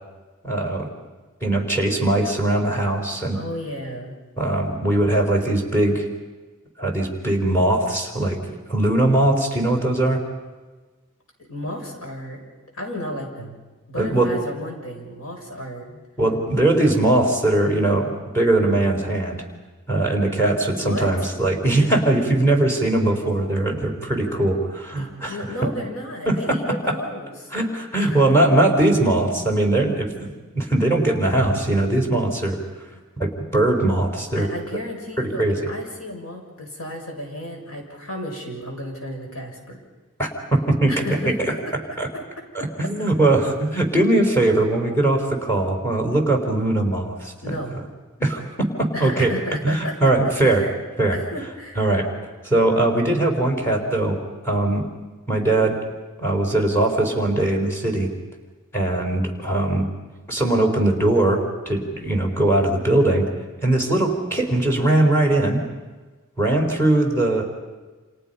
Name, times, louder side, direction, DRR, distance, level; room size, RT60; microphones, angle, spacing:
voice 1, 0.4-0.9 1.4-3.4 4.4-6.1 6.8-8.4 8.7-10.2 14.0-14.3 16.2-19.4 19.9-25.7 26.3-26.6 27.5-32.6 33.2-34.5 35.2-35.7 40.2-41.0 42.0-42.1 42.5-47.3 48.2-49.3 49.6-50.7 51.0-51.2 51.7-52.1 52.4-54.9 55.3-55.8 56.2-58.1 58.7-59.9 60.3-63.2 63.6-65.6 66.4-67.4, right 2 dB, 10° left, 2 dB, 4.6 m, -20 dB
voice 2, 3.3-4.2 11.5-12.4 12.7-13.6 13.9-16.0 20.8-21.3 25.0-27.5 28.0-28.6 34.3-39.8 40.9-41.6 42.1-42.2 42.6-42.7 47.4-47.8 48.9-50.1 50.4-50.7 51.1-51.9, left 1 dB, 80° left, 1 dB, 6.8 m, -33 dB
30.0 x 27.5 x 5.7 m, 1.3 s
head